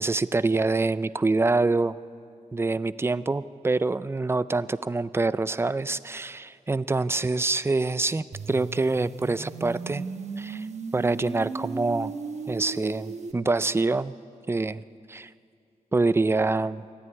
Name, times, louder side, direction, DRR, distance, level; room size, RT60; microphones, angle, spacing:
voice 1, 0.0-2.0 2.5-10.0 10.4-10.7 10.9-12.1 12.5-14.1 14.5-14.8 15.1-15.3 15.9-16.8, right 3 dB, 20° right, 16 dB, 0.4 m, -25 dB
sound 1, 8.3-13.3, right 4 dB, 60° right, 1.3 m, -36 dB
23.5 x 14.0 x 9.7 m, 2.5 s
wide cardioid pair, 115°, 13 cm